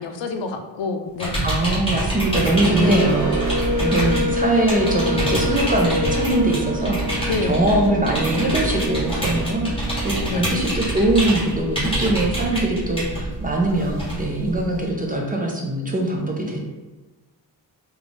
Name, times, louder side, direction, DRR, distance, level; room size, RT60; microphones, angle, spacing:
voice 1, 0.0-1.4 2.8-3.2 3.8-3.9 7.3-7.6 10.3-10.5, left 3 dB, 75° left, 6 dB, 0.5 m, -27 dB
sound 1, 1.2-14.9, right 1 dB, 10° left, 1.3 m, -27 dB
voice 2, 1.4-16.6, right 1 dB, 20° right, -1 dB, 0.5 m, -22 dB
sound 2, 2.0-10.4, equal, 40° right, 0.8 m, -26 dB
3.4 x 2.4 x 3.8 m, 1.3 s
wide cardioid pair, 155°, 44 cm